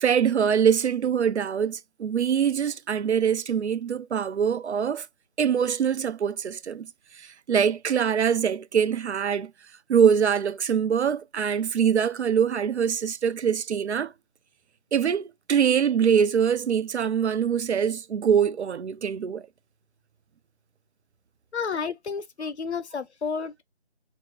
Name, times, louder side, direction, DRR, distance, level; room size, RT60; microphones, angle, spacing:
voice 1, 0.0-5.1 5.4-6.9 7.2-9.5 9.9-14.1 14.9-19.5, right 7 dB, 85° right, 0.5 m, -23 dB
voice 2, 21.5-23.6, left 5 dB, 80° left, 0.6 m, -31 dB
3.0 x 2.1 x 3.5 m
figure-of-eight pair, 175°, 33 cm